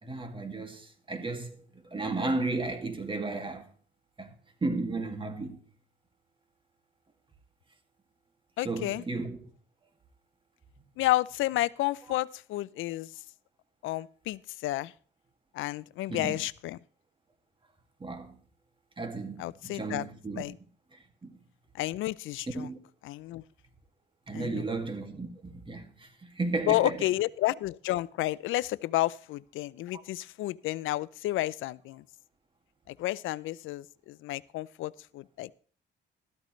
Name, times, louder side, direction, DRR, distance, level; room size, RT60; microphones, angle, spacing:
voice 1, 0.0-3.7 4.2-4.3 4.6-5.6 8.6-9.4 12.1-12.2 16.1-16.4 18.0-18.4 19.0-20.5 20.9-21.4 22.5-22.8 24.3-27.0 29.9-30.0, right 3 dB, 25° right, 2.1 m, -34 dB
voice 2, 8.6-9.0 11.0-13.1 13.8-14.9 15.5-16.8 19.4-20.1 20.4-20.5 21.7-22.7 23.0-23.4 24.3-24.6 26.7-32.0 32.9-35.5, left 16 dB, 85° left, 0.5 m, -31 dB
13.0 x 13.0 x 3.2 m
cardioid pair, 90°, 20 cm